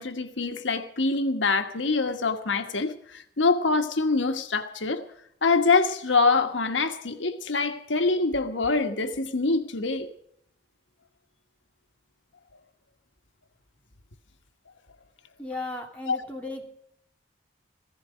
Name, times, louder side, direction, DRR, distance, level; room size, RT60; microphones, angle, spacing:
voice 1, 0.0-5.0 5.4-10.1 16.1-16.2, left 3 dB, 90° left, 1.4 m, -25 dB
voice 2, 15.4-16.7, left 2 dB, 5° left, 2.6 m, -35 dB
16.0 x 15.0 x 5.2 m
head